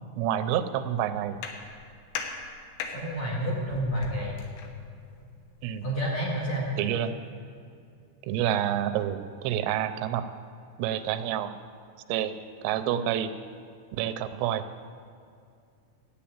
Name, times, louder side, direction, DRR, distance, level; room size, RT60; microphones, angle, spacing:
voice 1, 0.2-1.4 5.6-5.9 6.8-7.1 8.2-10.3 10.8-11.5 12.1-12.3 12.6-13.3 13.9-14.6, right 10 dB, 85° right, 10 dB, 3.2 m, -28 dB
sound 1, 1.1-7.3, left 5 dB, 75° left, 3.2 m, -42 dB
voice 2, 2.9-4.4 5.8-6.7, equal, 50° left, -5 dB, 2.4 m, -29 dB
13.0 x 8.9 x 8.7 m, 2.3 s
omnidirectional pair, 5.7 m